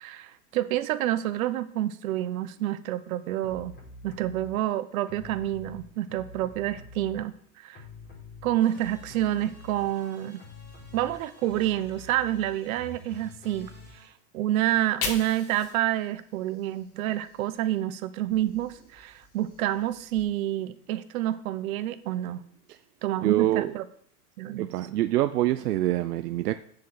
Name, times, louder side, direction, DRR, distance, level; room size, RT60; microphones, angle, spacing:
voice 1, 0.0-3.7 4.0-7.8 8.4-10.4 10.9-14.1 14.3-22.4 23.0-23.9 24.4-24.7, right 13 dB, 65° right, 12 dB, 1.1 m, -28 dB
sound 1, 3.4-4.6 5.0-7.5 7.7-14.1, left 3 dB, 25° left, 4.6 m, -47 dB
Fire, 14.6-17.8 18.2-20.2, left 5 dB, 70° left, 2.7 m, -41 dB
voice 2, 23.2-23.7 24.6-26.5, right 14 dB, 85° right, 10 dB, 0.7 m, -25 dB
7.5 x 6.5 x 7.9 m, 0.64 s
supercardioid pair, 135°, 45 cm